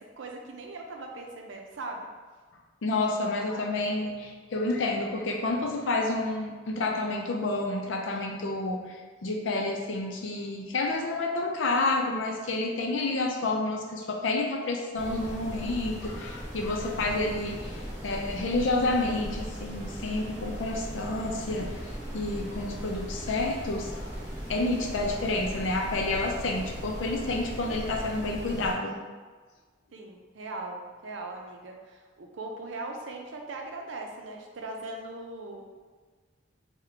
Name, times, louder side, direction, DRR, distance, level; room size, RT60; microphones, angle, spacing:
voice 1, 0.0-2.1 29.9-35.7, right 2 dB, 90° right, 2 dB, 0.5 m, -40 dB
voice 2, 2.8-24.0 24.5-29.0, left 2 dB, 90° left, 2 dB, 0.5 m, -29 dB
sound 1, 15.0-28.7, equal, 15° left, 0.7 m, -38 dB
3.6 x 2.2 x 3.3 m, 1.4 s
head